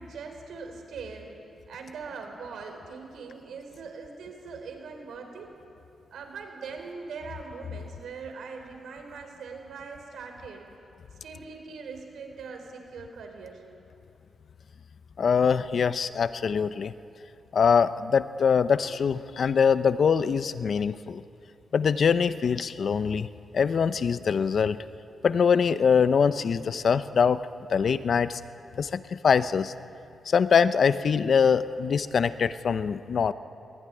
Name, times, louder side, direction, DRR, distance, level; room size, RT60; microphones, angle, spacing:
voice 1, 0.0-1.3 1.7-5.5 6.1-10.6 11.2-13.6, right 5 dB, 80° right, 4 dB, 4.5 m, -41 dB
voice 2, 15.2-16.9 17.5-21.2 21.7-23.3 23.5-24.8 25.2-27.4 27.7-28.4 28.8-29.7 30.3-33.3, left 6 dB, 55° left, 13 dB, 0.7 m, -23 dB
22.5 x 19.5 x 9.9 m, 2.7 s
cardioid pair, 105°, 0 cm